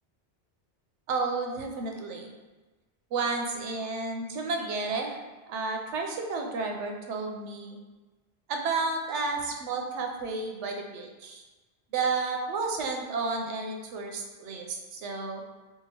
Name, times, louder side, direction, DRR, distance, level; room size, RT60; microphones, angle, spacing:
voice 1, 1.1-2.3 3.1-5.2 5.5-7.8 8.5-11.4 11.9-15.4, right 4 dB, 90° right, 2 dB, 0.9 m, -31 dB
2.9 x 2.3 x 4.1 m, 1.2 s
omnidirectional pair, 1.2 m